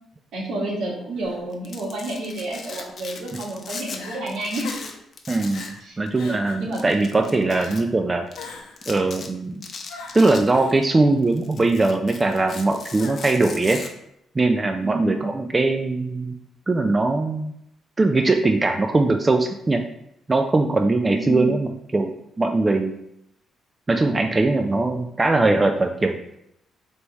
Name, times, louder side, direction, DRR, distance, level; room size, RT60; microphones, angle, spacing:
voice 1, 0.3-4.7 5.8-6.0 6.6-6.8 14.8-15.2 21.1-21.5, right 1 dB, 75° right, -2 dB, 1.4 m, -30 dB
Crying sobbing, 1.2-1.4 2.7-3.2 3.6-3.7 3.9-4.2 4.6-5.0 5.5-5.8 6.1-6.7 7.5-7.9 8.3-8.9 9.9-10.8 12.2-12.6 13.0-13.5, left 4 dB, 90° left, 0.8 m, -41 dB
Domestic sounds home sounds, 1.5-4.0 4.3-5.8 6.1-6.2 6.7-7.8 8.3-8.4 8.8-9.3 9.6-10.9 11.2-13.9, left 4 dB, 50° left, 0.6 m, -38 dB
voice 2, 5.3-8.3 8.9-9.6 10.1-13.8 14.4-16.3 16.7-17.5 18.0-19.8 20.3-22.9 23.9-26.2, right 2 dB, 25° right, 5 dB, 0.3 m, -21 dB
3.4 x 3.2 x 4.0 m, 0.77 s
cardioid pair, 90°, 0 cm